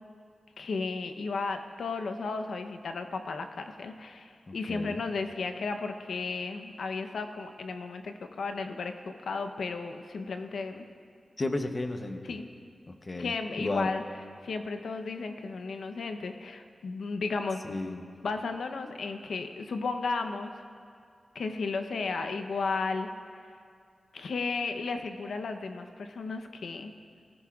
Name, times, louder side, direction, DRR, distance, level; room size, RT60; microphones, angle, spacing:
voice 1, 0.6-10.9 12.3-12.5 13.2-14.0 14.4-17.7 18.2-20.5 21.3-23.1 24.1-26.9, left 4 dB, 85° left, 7 dB, 0.7 m, -34 dB
voice 2, 4.5-5.0 11.4-12.3 12.9-13.9 17.6-18.0, left 2 dB, 30° left, 6 dB, 0.8 m, -34 dB
21.0 x 15.5 x 2.4 m, 2.3 s
wide cardioid pair, 145°, 0 cm